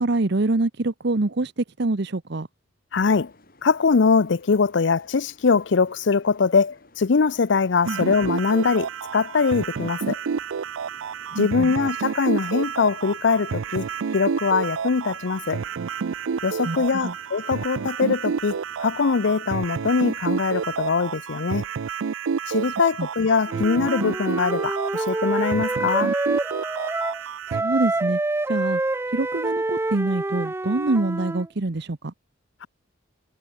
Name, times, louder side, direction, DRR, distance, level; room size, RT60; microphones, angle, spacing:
voice 1, 0.0-2.5 7.9-8.0 11.3-11.7 16.6-16.8 17.0-17.1 23.0-23.1 27.5-28.2 28.5-28.8 29.1-32.1, right 2 dB, 60° right, 0.9 m, -25 dB
voice 2, 2.9-3.3 3.6-10.2 11.4-13.9 14.1-15.6 16.4-21.7 22.5-26.1, left 5 dB, 65° left, 0.5 m, -22 dB
sound 1, 2.9-20.9, left 2 dB, 50° left, 5.7 m, -55 dB
sound 2, 7.8-27.6, right 6 dB, 85° right, 0.5 m, -30 dB
Wind instrument woodwind instrument, 23.5-27.2 27.5-31.5, right 2 dB, 10° right, 0.3 m, -27 dB
head